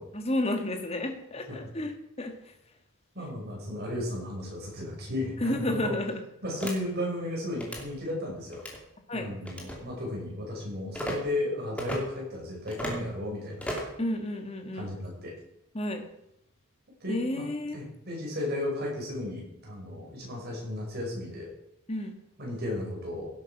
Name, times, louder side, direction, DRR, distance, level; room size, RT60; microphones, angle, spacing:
voice 1, 0.1-2.3 3.5-3.6 5.4-6.2 6.6-6.7 9.1-9.3 14.0-14.9 15.7-16.0 17.1-17.8 21.9-22.1, left 1 dB, 25° left, 5 dB, 1.7 m, -31 dB
voice 2, 3.1-5.9 6.4-8.6 9.1-13.7 14.7-15.3 17.0-21.5 22.4-23.3, left 1 dB, 45° right, -2 dB, 6.0 m, -34 dB
sound 1, 6.6-6.7 7.5-7.8 8.5-8.8 9.5-9.8 10.9-11.2 11.8-12.0 12.7-13.0 13.6-14.0, equal, 5° left, 2.5 m, -34 dB
17.0 x 8.6 x 6.0 m, 0.83 s
head